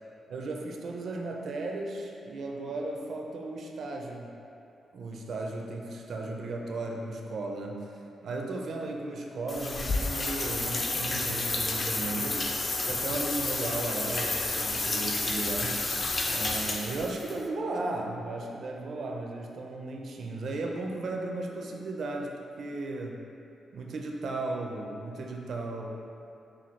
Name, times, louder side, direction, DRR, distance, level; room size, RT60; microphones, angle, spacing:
voice 1, 0.3-4.3 4.9-12.5 12.8-15.8 16.3-23.2 23.7-25.9, right 2 dB, 65° right, 1 dB, 0.4 m, -35 dB
sound 1, 9.5-17.3, left 2 dB, 35° left, 0.4 m, -30 dB
5.7 x 2.3 x 3.1 m, 2.7 s
cardioid pair, 105°, 0 cm